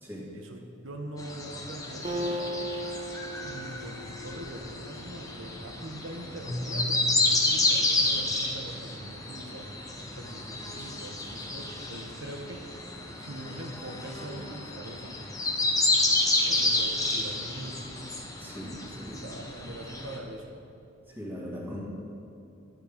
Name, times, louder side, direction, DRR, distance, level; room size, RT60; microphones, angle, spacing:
voice 1, 0.3-2.6 3.4-12.8 13.2-15.2 16.4-17.9 18.8-18.9 19.2-20.5, right 1 dB, 85° right, 3 dB, 1.2 m, -42 dB
sound 1, 1.2-20.2, left 2 dB, 20° left, 1.0 m, -30 dB
Acoustic guitar, 2.0-5.6, equal, 30° right, 0.8 m, -37 dB
Keyboard (musical), 6.4-9.4, right 1 dB, 75° left, 2.3 m, -39 dB
voice 2, 18.4-19.2 21.1-21.8, equal, 10° right, -5 dB, 2.3 m, -39 dB
12.0 x 9.2 x 5.2 m, 2.6 s
head